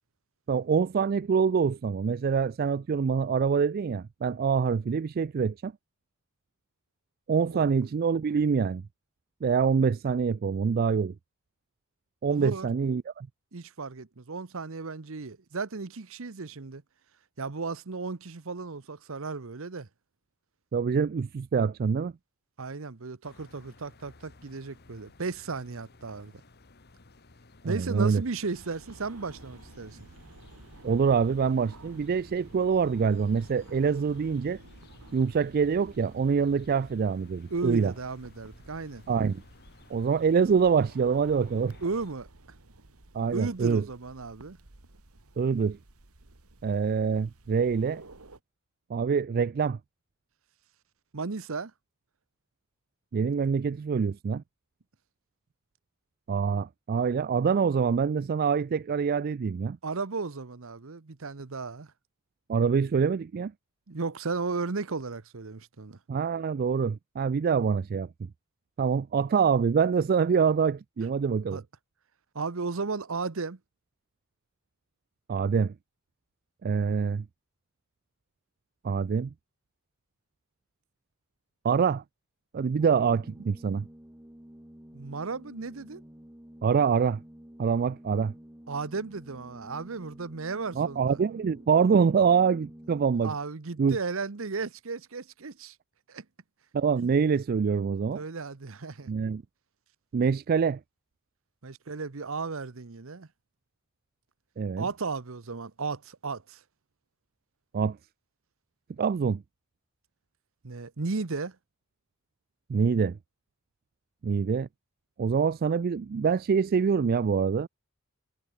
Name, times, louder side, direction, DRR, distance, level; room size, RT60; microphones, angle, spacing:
voice 1, 0.5-5.7 7.3-8.8 9.4-11.1 12.2-13.3 20.7-22.1 27.6-28.2 30.8-34.6 35.1-37.9 39.1-39.4 39.9-41.8 43.1-43.8 45.4-45.8 46.6-48.0 48.9-49.8 53.1-54.4 56.3-59.8 62.5-63.5 66.1-68.1 68.8-71.6 75.3-75.7 76.6-77.2 78.8-79.3 81.6-82.0 82.5-83.9 86.6-87.2 87.6-88.3 90.8-93.3 93.8-94.0 96.7-98.2 99.1-99.4 100.1-100.8 104.6-104.9 107.7-108.0 109.0-109.4 112.7-113.2 114.2-114.7 115.2-117.7, right 6 dB, 40° right, 0.3 m, -25 dB
voice 2, 12.3-12.7 13.5-16.8 17.4-19.9 22.6-26.3 27.6-30.0 37.5-39.0 41.8-42.3 43.3-44.6 51.1-51.7 59.8-61.9 63.9-66.0 71.5-71.6 72.3-73.6 84.9-86.0 88.7-91.2 93.2-95.8 96.1-96.2 97.0-97.1 98.1-99.1 101.6-103.3 104.8-106.6 110.6-111.6, right 4 dB, 60° right, 0.9 m, -35 dB
sound 1, 23.2-42.1, left 3 dB, 45° left, 1.4 m, -57 dB
sound 2, 28.5-48.4, right 2 dB, 80° right, 2.1 m, -52 dB
Organ, 82.8-93.5, equal, 10° right, 0.9 m, -50 dB
head